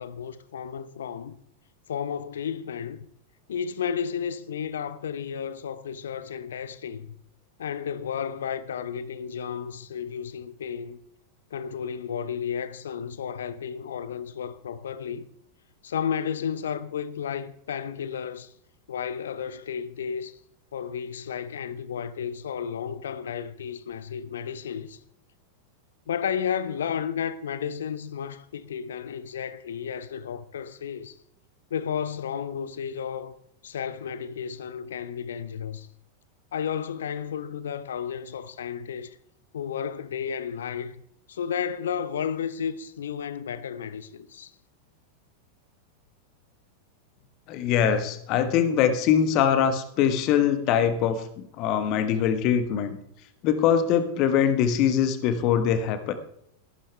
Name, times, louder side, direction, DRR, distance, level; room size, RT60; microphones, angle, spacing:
voice 1, 0.0-1.4 1.9-3.1 3.5-7.1 7.6-11.0 11.5-15.3 15.8-18.5 18.9-20.4 20.7-25.0 26.1-31.2 31.7-33.4 33.6-35.9 36.5-39.2 39.5-41.0 41.3-44.5, left 7 dB, 65° left, 0.7 m, -32 dB
voice 2, 47.5-51.2 51.6-53.0 53.4-56.1, left 8 dB, 40° left, 1.4 m, -22 dB
14.0 x 11.5 x 3.4 m
figure-of-eight pair, 90°, 0 cm